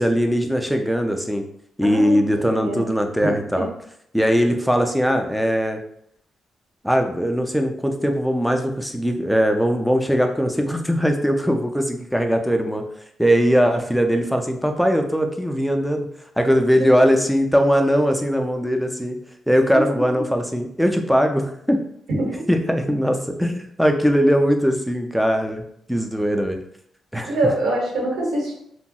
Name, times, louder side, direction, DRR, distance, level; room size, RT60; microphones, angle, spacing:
voice 1, 0.0-1.4 1.8-3.7 4.1-5.8 6.8-12.8 13.2-16.1 16.4-19.2 19.5-21.8 22.5-25.6 25.9-26.6 27.1-27.3, equal, ahead, 4 dB, 0.3 m, -20 dB
voice 2, 1.8-2.8 3.2-3.7 16.8-16.9 19.7-19.8 22.1-22.4 27.2-28.5, right 1 dB, 80° right, -3 dB, 1.2 m, -24 dB
2.9 x 2.2 x 2.7 m, 0.71 s
cardioid pair, 115°, 0 cm